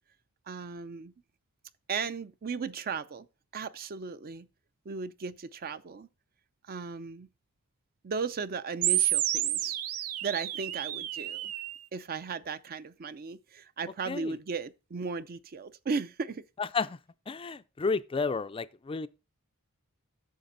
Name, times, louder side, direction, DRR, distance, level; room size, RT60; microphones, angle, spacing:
voice 1, 0.5-1.1 1.9-3.3 3.5-4.5 4.9-6.1 6.7-7.3 8.0-9.7 10.2-11.5 11.9-16.4, right 5 dB, 45° right, 0.5 m, -36 dB
sound 1, 8.8-11.8, right 12 dB, 80° right, 0.6 m, -30 dB
voice 2, 16.6-17.0 17.3-19.1, left 4 dB, 25° left, 0.4 m, -31 dB
9.4 x 6.5 x 3.9 m
head